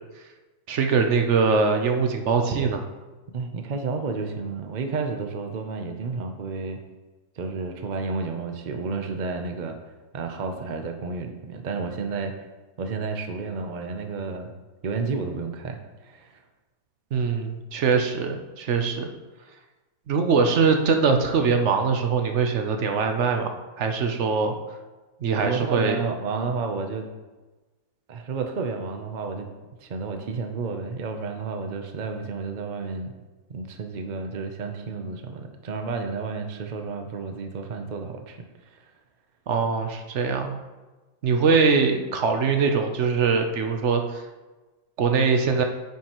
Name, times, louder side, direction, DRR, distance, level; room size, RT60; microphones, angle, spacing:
voice 1, 0.7-2.8 17.1-19.1 20.1-23.5 23.8-24.5 25.2-26.0 39.5-40.6 41.2-44.2 45.0-45.6, right 5 dB, 60° right, 5 dB, 0.8 m, -22 dB
voice 2, 3.3-6.8 7.4-9.8 10.1-12.3 12.8-14.5 14.8-16.4 25.4-27.1 28.1-29.5 29.8-33.1 33.5-38.4 38.7-38.9, right 4 dB, 80° right, 5 dB, 0.4 m, -31 dB
9.3 x 5.8 x 3.0 m, 1.2 s
omnidirectional pair, 1.8 m